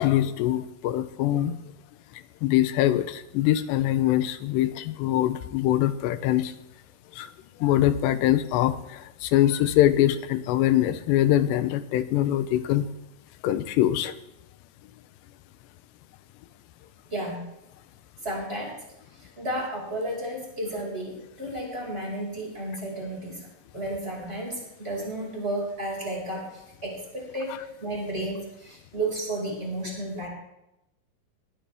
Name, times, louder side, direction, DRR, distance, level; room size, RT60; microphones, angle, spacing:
voice 1, 0.0-1.6 2.1-6.5 7.1-7.3 7.6-12.9 13.4-14.1, left 13 dB, 90° left, 12 dB, 3.0 m, -23 dB
voice 2, 17.1-17.4 18.2-18.7 19.2-23.4 23.7-26.4 26.8-30.3, right 1 dB, 15° right, -2 dB, 5.5 m, -32 dB
21.5 x 17.5 x 3.5 m, 0.89 s
omnidirectional pair, 4.8 m